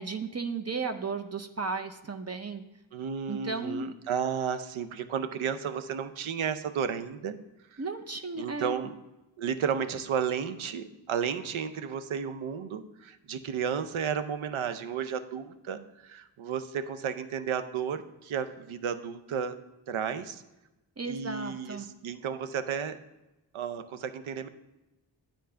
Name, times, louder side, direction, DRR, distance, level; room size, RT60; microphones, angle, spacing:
voice 1, 0.0-2.6 3.3-3.9 7.8-8.7 21.0-21.9, right 4 dB, 35° right, 7 dB, 0.6 m, -34 dB
voice 2, 2.9-7.4 7.7-7.8 8.4-8.9 9.4-19.6 19.9-20.4 21.0-23.0 23.5-24.5, right 7 dB, 85° right, 10 dB, 0.6 m, -33 dB
9.3 x 3.8 x 5.5 m, 0.98 s
cardioid pair, 45°, 47 cm